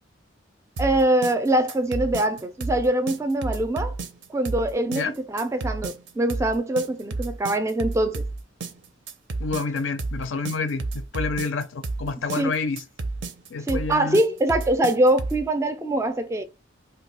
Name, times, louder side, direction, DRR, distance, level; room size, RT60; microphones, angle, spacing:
voice 1, 0.8-4.0 4.3-8.3 12.4-12.5 13.7-16.4, right 1 dB, 15° right, 0.3 m, -23 dB
sound 1, 0.8-15.5, right 3 dB, 70° right, 0.6 m, -31 dB
voice 2, 9.4-12.8 13.5-14.2, left 4 dB, 75° left, 0.4 m, -28 dB
2.6 x 2.2 x 4.1 m
head